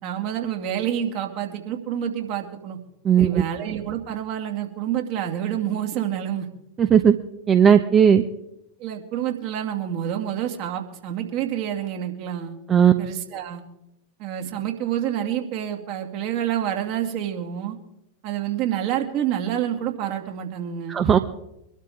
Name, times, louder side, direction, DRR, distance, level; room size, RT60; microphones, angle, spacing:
voice 1, 0.0-2.8 3.2-6.5 8.8-12.5 13.0-13.6 14.2-17.8 18.2-21.0, right 10 dB, 45° right, 3 dB, 2.5 m, -28 dB
voice 2, 6.8-7.2 7.5-8.2 12.7-12.9 20.9-21.2, right 8 dB, 25° right, 9 dB, 0.8 m, -16 dB
24.5 x 12.5 x 3.7 m, 0.83 s
figure-of-eight pair, 90°, 0 cm